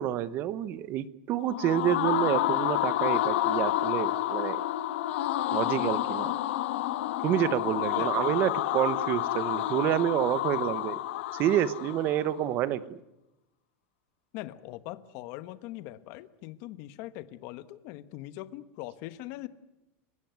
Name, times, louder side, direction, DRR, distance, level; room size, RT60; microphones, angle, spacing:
voice 1, 0.0-4.6 5.5-6.3 7.2-11.0 11.3-13.0, right 11 dB, 30° right, 17 dB, 0.9 m, -28 dB
sound 1, 1.4-12.3, left 14 dB, 65° left, 1.5 m, -29 dB
voice 2, 8.0-8.3 14.3-19.5, left 16 dB, 40° left, 14 dB, 1.2 m, -41 dB
29.5 x 16.5 x 9.5 m, 0.92 s
supercardioid pair, 180°, 7 cm